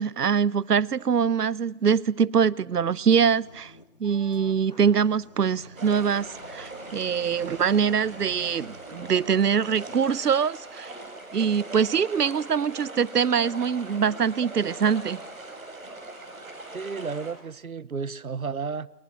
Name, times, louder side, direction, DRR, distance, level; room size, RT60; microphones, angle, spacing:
voice 1, 0.0-3.7 4.0-10.9 11.3-15.2, right 7 dB, 90° right, 0.8 m, -23 dB
sound 1, 3.1-10.1, left 1 dB, 25° left, 1.1 m, -50 dB
sound 2, 5.7-17.3, right 2 dB, ahead, 1.9 m, -41 dB
voice 2, 16.7-18.9, right 5 dB, 65° right, 1.0 m, -32 dB
30.0 x 22.5 x 6.1 m
figure-of-eight pair, 175°, 46 cm